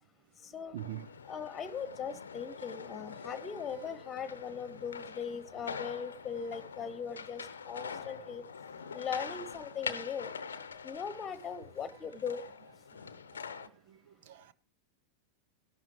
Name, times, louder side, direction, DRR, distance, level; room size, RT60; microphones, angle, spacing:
voice 1, 0.7-1.1 13.3-13.4 13.9-14.0 14.3-14.5, right 12 dB, 55° right, 0.8 m, -42 dB
sound 1, 0.8-13.7, left 6 dB, 70° left, 0.8 m, -44 dB
voice 2, 1.3-7.4 7.7-8.4 8.9-10.3 10.8-12.4, left 6 dB, 20° left, 1.4 m, -39 dB
16.5 x 11.5 x 3.1 m
figure-of-eight pair, 90°, 0 cm